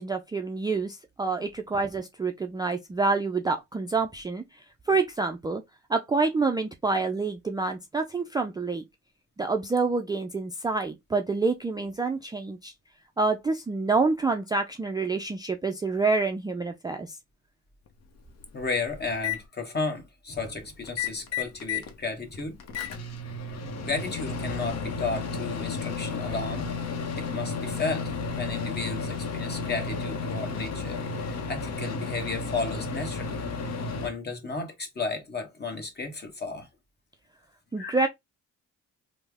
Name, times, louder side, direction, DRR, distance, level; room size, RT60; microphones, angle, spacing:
voice 1, 0.0-4.4 4.9-5.6 5.9-8.8 9.4-12.7 13.2-17.2 37.7-38.1, right 3 dB, 15° right, 0.3 m, -27 dB
Microwave oven, 17.9-18.0 18.4-19.4 20.8-21.9 22.3-34.1, left 4 dB, 60° left, 0.8 m, -33 dB
voice 2, 18.5-22.6 23.9-26.6 27.2-31.0 31.2-33.4 34.0-36.7 37.8-38.1, left 3 dB, 35° left, 1.2 m, -33 dB
3.2 x 2.1 x 3.4 m
cardioid pair, 90°, 30 cm